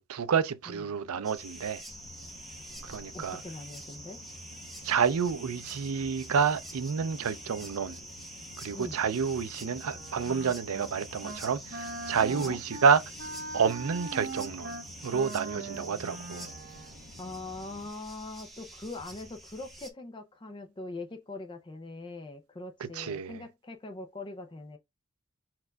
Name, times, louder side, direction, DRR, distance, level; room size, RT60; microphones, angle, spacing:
voice 1, 0.0-1.8 2.8-3.4 4.8-8.0 8.6-13.0 13.5-14.8 15.0-16.5 23.0-23.4, right 6 dB, 75° right, 0.4 m, -29 dB
sound 1, 1.2-19.9, right 1 dB, ahead, 1.0 m, -46 dB
sound 2, 1.9-17.9, equal, 55° left, 0.9 m, -52 dB
voice 2, 3.1-4.2 8.7-9.0 12.3-12.6 15.9-16.0 17.2-24.8, left 2 dB, 20° left, 0.5 m, -42 dB
Wind instrument woodwind instrument, 9.8-10.9 11.2-11.5 11.7-17.0, right 2 dB, 45° right, 0.8 m, -41 dB
4.9 x 4.5 x 2.3 m
head